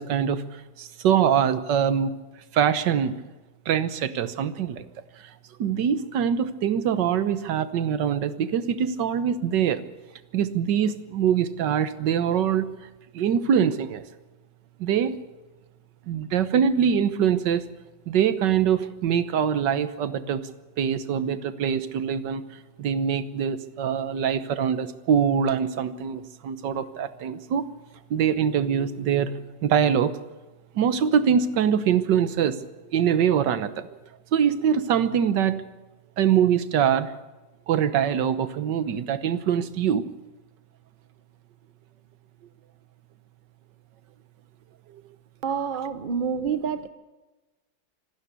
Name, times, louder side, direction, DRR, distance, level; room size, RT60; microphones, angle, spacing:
voice 1, 0.0-2.2 2.5-3.2 3.6-4.9 5.2-5.3 5.6-9.9 10.3-12.7 13.1-14.0 14.8-15.2 16.1-17.6 18.1-20.5 20.8-22.4 22.8-27.7 28.1-30.1 30.7-32.6 32.9-34.0 34.3-35.6 36.2-37.1 37.7-40.1 44.9-45.0, right 8 dB, 70° right, 12 dB, 1.6 m, -23 dB
voice 2, 45.4-46.9, right 6 dB, 40° right, 11 dB, 0.8 m, -28 dB
26.0 x 12.5 x 8.2 m, 1.1 s
omnidirectional pair, 2.1 m